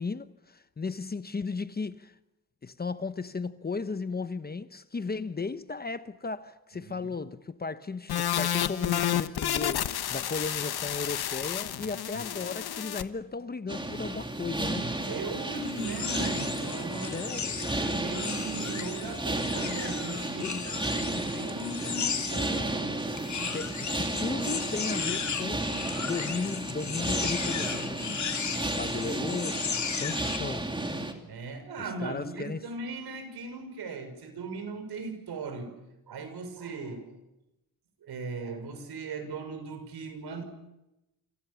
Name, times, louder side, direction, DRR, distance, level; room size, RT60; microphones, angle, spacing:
voice 1, 0.0-2.1 2.6-14.9 17.1-17.7 20.4-20.6 23.5-25.7 26.0-30.7 31.8-32.6, left 4 dB, 25° left, 1.0 m, -35 dB
voice 2, 6.7-7.1 12.1-12.2 14.8-17.1 17.4-23.0 31.3-35.7 36.1-37.1 38.0-40.4, right 3 dB, 80° right, 6.4 m, -38 dB
sound 1, 8.1-13.0, left 11 dB, 75° left, 1.3 m, -30 dB
sound 2, 13.7-31.1, right 2 dB, 10° right, 2.9 m, -33 dB
sound 3, 15.7-22.6 23.2-30.4, left 6 dB, 50° left, 3.0 m, -35 dB
28.5 x 27.0 x 7.1 m
wide cardioid pair, 150°, 38 cm